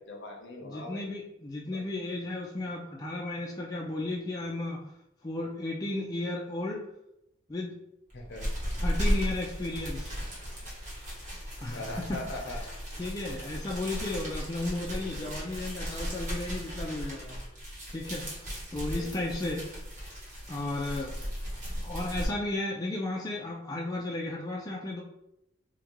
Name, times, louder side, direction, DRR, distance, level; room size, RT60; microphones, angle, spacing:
voice 1, 0.1-1.1 1.7-1.8 8.1-8.5 11.7-12.6 14.7-15.3 18.9-19.4, left 2 dB, 60° left, 0 dB, 0.7 m, -41 dB
voice 2, 0.6-4.8 5.2-6.8 7.5-7.8 8.8-10.2 11.6-12.2 12.5-12.7 13.0-17.4 17.9-19.7 20.5-21.2 21.8-25.0, left 2 dB, 20° left, -3 dB, 0.3 m, -34 dB
sound 1, 8.1-22.3, equal, 35° right, 1.0 m, -35 dB
3.6 x 2.2 x 2.9 m, 0.82 s
head